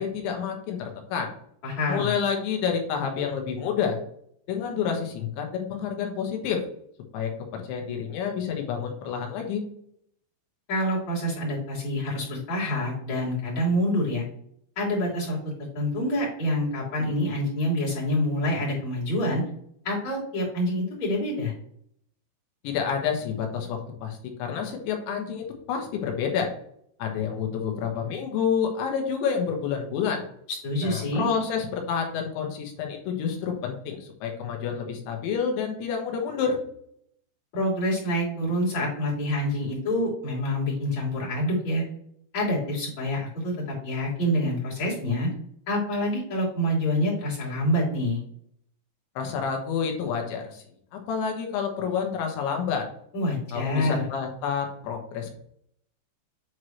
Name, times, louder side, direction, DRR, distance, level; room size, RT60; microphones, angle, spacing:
voice 1, 0.0-1.3 1.9-4.0 4.5-6.6 7.1-9.6 22.6-26.5 27.0-30.2 30.8-36.6 49.2-50.6 50.9-52.9 53.5-55.3, left 7 dB, 75° left, 2 dB, 3.5 m, -29 dB
voice 2, 1.6-2.1 10.7-14.2 14.8-15.4 15.8-19.4 19.8-21.5 30.5-31.3 37.5-41.8 42.3-45.3 45.7-48.2 53.1-54.1, left 1 dB, 40° left, -6 dB, 3.9 m, -26 dB
9.2 x 4.7 x 3.2 m, 0.67 s
omnidirectional pair, 5.6 m